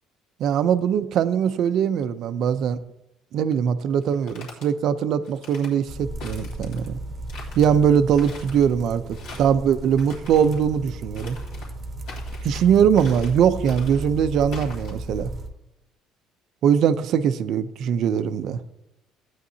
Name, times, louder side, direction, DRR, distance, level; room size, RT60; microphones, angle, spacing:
voice 1, 0.4-2.8 3.3-7.0 7.5-11.4 12.4-15.3 16.6-18.6, right 8 dB, 45° right, 12 dB, 0.5 m, -21 dB
sound 1, 4.0-4.7 5.2-5.7 6.2-6.9 7.3-7.7 8.1-8.7 9.1-9.6 9.9-10.6 11.2-11.7 12.1-12.6 12.9-13.4 13.6-14.1 14.5-14.9, left 3 dB, 70° left, 3.1 m, -42 dB
sound 2, 5.9-15.5, right 1 dB, 25° right, 1.0 m, -35 dB
15.5 x 9.3 x 2.8 m, 0.89 s
cardioid pair, 175°, 0 cm